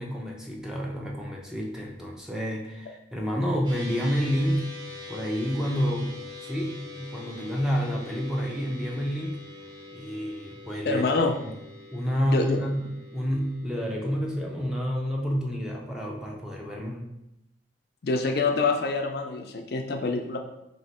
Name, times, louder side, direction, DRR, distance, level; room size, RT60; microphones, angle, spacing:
voice 1, 0.0-4.7 5.1-9.4 9.9-11.0 11.4-11.5 11.9-12.8 13.1-17.0, equal, 5° right, -2 dB, 0.5 m, -29 dB
sound 1, 3.6-14.8, left 3 dB, 25° right, 0.9 m, -44 dB
voice 2, 10.8-11.3 12.3-12.6 18.0-20.4, left 3 dB, 55° left, 4 dB, 0.4 m, -26 dB
3.1 x 2.9 x 4.1 m, 0.84 s
head